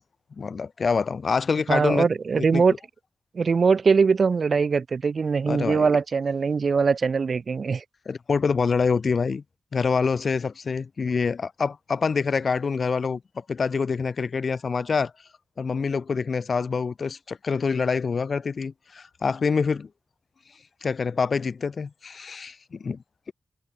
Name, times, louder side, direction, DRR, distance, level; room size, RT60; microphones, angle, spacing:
voice 1, 0.4-2.1 2.4-2.6 5.5-5.9 8.1-9.4 9.7-15.1 15.6-19.9 20.8-23.0, left 5 dB, 55° left, 1.9 m, -26 dB
voice 2, 1.7-2.7 3.3-7.8, right 5 dB, 55° right, 2.9 m, -22 dB
wide cardioid pair, 125°, 0 cm